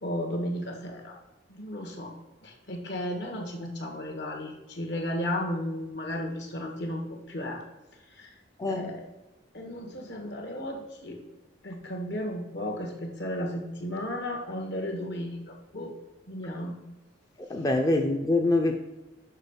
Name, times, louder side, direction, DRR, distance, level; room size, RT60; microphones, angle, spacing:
voice 1, 0.0-1.2 1.5-2.1 2.4-7.6 8.1-8.3 8.7-9.1 9.5-11.2 11.6-15.9 16.3-16.8, left 1 dB, 65° left, 3 dB, 1.5 m, -34 dB
voice 2, 8.6-9.0 17.5-18.8, left 2 dB, 20° left, 3 dB, 0.5 m, -25 dB
6.5 x 5.3 x 5.1 m, 1.1 s
head